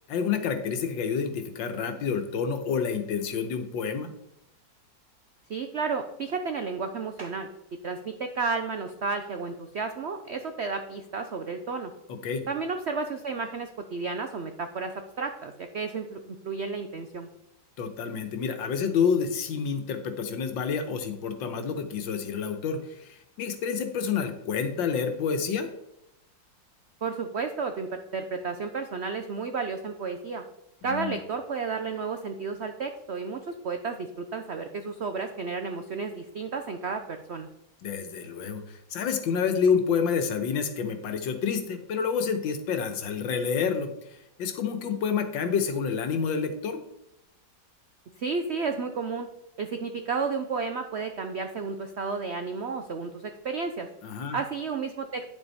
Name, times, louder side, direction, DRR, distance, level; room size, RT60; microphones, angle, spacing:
voice 1, 0.1-4.1 12.1-12.5 17.8-25.7 30.8-31.2 37.8-43.9 44.4-46.8 54.0-54.4, left 6 dB, 80° left, 7 dB, 1.7 m, -28 dB
voice 2, 5.5-7.5 7.8-11.9 12.5-17.3 27.0-30.4 30.8-37.5 48.2-49.3 49.6-53.9 54.3-55.3, right 4 dB, 90° right, 7 dB, 0.5 m, -32 dB
9.8 x 7.1 x 4.1 m, 0.84 s
omnidirectional pair, 2.0 m